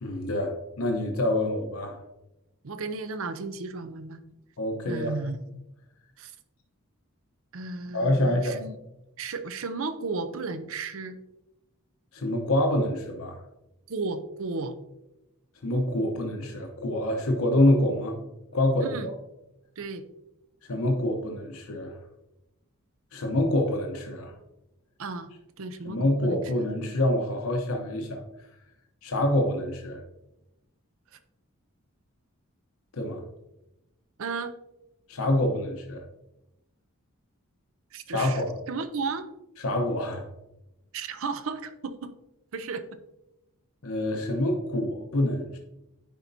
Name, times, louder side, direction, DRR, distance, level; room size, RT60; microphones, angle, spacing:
voice 1, 0.0-2.0 4.6-5.2 7.9-8.6 12.1-13.4 15.6-18.2 18.5-19.1 20.7-22.0 23.1-24.3 25.8-28.2 29.0-30.0 32.9-33.2 35.1-36.0 38.1-38.5 39.6-40.3 43.8-45.6, left 1 dB, 70° left, 2 dB, 0.9 m, -26 dB
voice 2, 2.6-4.2 4.9-5.4 6.2-6.3 7.5-8.7 9.2-11.2 13.9-14.7 18.8-19.1 19.8-20.0 25.0-25.3 25.6-26.4 34.2-34.6 37.9-38.4 38.7-39.3 40.9-42.1 42.5-42.8, right 4 dB, 65° right, 10 dB, 0.6 m, -34 dB
10.5 x 4.2 x 2.7 m, 0.91 s
head